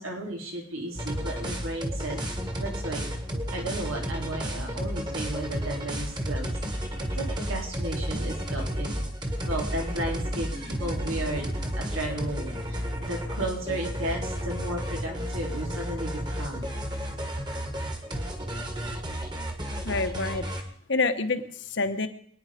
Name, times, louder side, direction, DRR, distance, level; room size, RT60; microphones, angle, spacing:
voice 1, 0.0-2.2 2.6-3.0 3.5-6.8 7.1-9.0 9.5-11.5 11.7-16.7, right 1 dB, 90° right, 0 dB, 4.0 m, -34 dB
sound 1, 0.9-20.6, equal, 20° right, 1.8 m, -32 dB
voice 2, 19.8-20.4 20.9-22.1, left 3 dB, 60° left, 8 dB, 1.2 m, -27 dB
25.5 x 9.8 x 5.1 m, 0.65 s
head